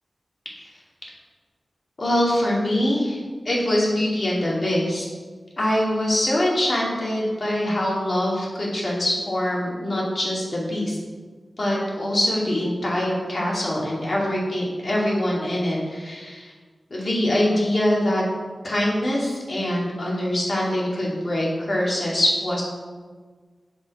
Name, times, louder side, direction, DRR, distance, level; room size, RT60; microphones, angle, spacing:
voice 1, 2.0-5.1 5.6-11.0 11.6-16.5 16.9-18.2 18.6-22.6, left 1 dB, 50° left, -4 dB, 2.3 m, -23 dB
6.5 x 5.3 x 4.7 m, 1.5 s
wide cardioid pair, 65°, 0 cm